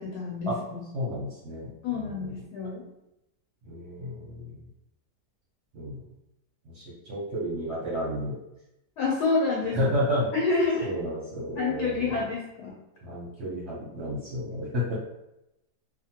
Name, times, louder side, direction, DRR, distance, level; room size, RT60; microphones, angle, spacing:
voice 1, 0.0-0.8 1.8-2.8 9.0-9.8 10.3-11.0 11.6-12.7, left 4 dB, 70° left, -3 dB, 1.1 m, -28 dB
voice 2, 0.9-2.3 3.7-4.6 5.7-6.0 6.7-8.4 9.7-10.3 10.8-12.3 13.0-14.9, equal, 55° right, -6 dB, 0.8 m, -31 dB
2.6 x 2.4 x 2.8 m, 0.89 s
omnidirectional pair, 1.8 m